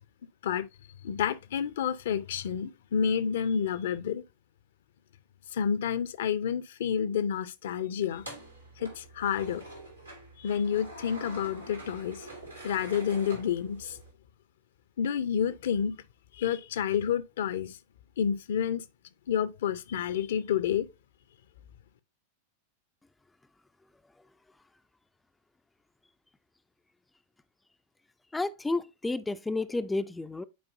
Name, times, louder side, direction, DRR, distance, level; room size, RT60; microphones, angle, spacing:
voice 1, 1.0-4.2 5.5-8.2 8.8-9.6 10.4-12.3 12.6-14.0 15.0-16.0 16.3-17.8 18.2-18.9 19.3-20.9, left 8 dB, 60° left, 0.5 m, -29 dB
sound 1, 8.1-14.1, right 1 dB, 90° right, 2.3 m, -45 dB
voice 2, 28.3-30.4, left 2 dB, 10° left, 0.3 m, -31 dB
9.4 x 4.5 x 2.6 m
figure-of-eight pair, 90°, 0 cm